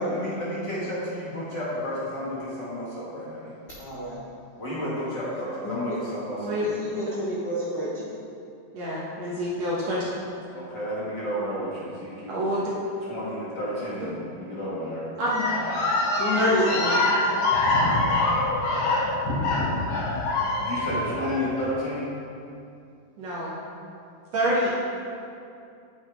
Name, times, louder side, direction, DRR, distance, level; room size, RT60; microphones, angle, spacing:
voice 1, 0.0-3.5 4.6-6.6 10.5-12.4 13.1-15.1 15.5-15.8 20.6-22.1, equal, 40° left, -9 dB, 2.0 m, -31 dB
voice 2, 3.8-4.2 5.6-6.0 6.6-8.1 15.2-15.4 16.2-16.8, left 1 dB, 55° left, -8 dB, 1.2 m, -30 dB
voice 3, 8.7-10.0 12.3-12.7 15.2-15.3 16.3-17.0 23.2-23.6 24.3-24.7, equal, 60° right, -6 dB, 2.1 m, -26 dB
sound 1, 15.3-21.4, left 2 dB, 80° left, 3.4 m, -24 dB
8.9 x 8.9 x 3.6 m, 2.5 s
omnidirectional pair, 4.1 m